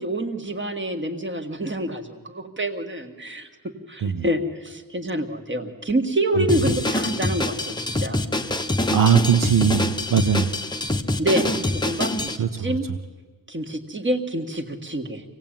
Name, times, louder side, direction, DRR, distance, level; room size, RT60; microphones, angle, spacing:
voice 1, 0.0-8.3 11.2-12.9 13.5-15.2, right 1 dB, 30° right, 6 dB, 1.8 m, -27 dB
Drum kit, 6.5-12.4, left 1 dB, 10° left, 0.9 m, -25 dB
voice 2, 8.9-10.5 12.4-12.7, right 7 dB, 60° right, 5 dB, 1.0 m, -20 dB
25.5 x 18.0 x 9.0 m, 1.5 s
wide cardioid pair, 175°, 38 cm